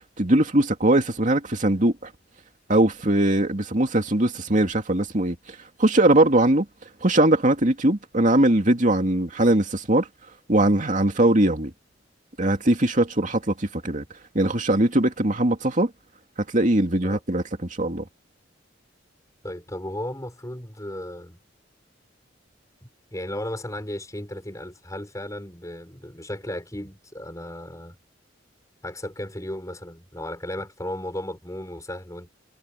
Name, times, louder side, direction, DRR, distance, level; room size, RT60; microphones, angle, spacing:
voice 1, 0.2-1.9 2.7-5.4 5.8-6.6 7.0-10.1 10.5-11.7 12.4-14.0 14.3-15.9 16.5-17.4 17.8-18.0, right 1 dB, 40° right, 2.6 m, -20 dB
voice 2, 19.4-21.4 22.8-28.0 28.8-32.3, left 1 dB, 15° left, 5.9 m, -35 dB
head